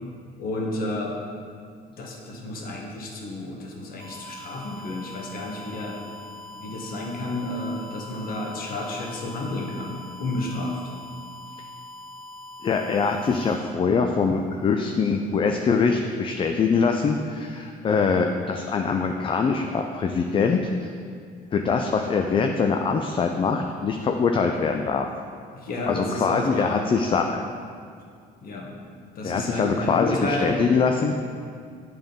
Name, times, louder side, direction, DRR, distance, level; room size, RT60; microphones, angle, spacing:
voice 1, 0.4-1.1 2.0-6.0 6.6-10.8 25.5-26.9 28.4-28.7 29.1-30.6, left 2 dB, 60° left, -1 dB, 1.4 m, -31 dB
sound 1, 4.0-13.6, left 1 dB, 70° right, 1.4 m, -42 dB
voice 2, 12.6-20.9 21.5-25.1 25.9-27.4 29.2-31.2, left 5 dB, 30° left, 4 dB, 0.4 m, -23 dB
9.2 x 3.8 x 5.2 m, 2.2 s
cardioid pair, 110°, 17 cm